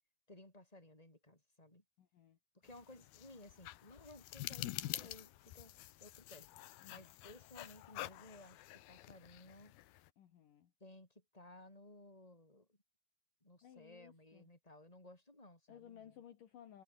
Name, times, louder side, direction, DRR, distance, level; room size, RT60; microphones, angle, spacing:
voice 1, 0.3-1.8 2.5-6.5 6.8-9.7 10.8-12.8 13.4-16.1, left 1 dB, 10° left, 6.3 m, -58 dB
voice 2, 2.0-2.4 6.8-7.2 10.2-10.7 13.6-14.5 15.7-16.8, left 10 dB, 60° left, 3.3 m, -58 dB
sound 1, 2.7-10.1, left 15 dB, 75° left, 2.8 m, -48 dB
omnidirectional pair, 4.6 m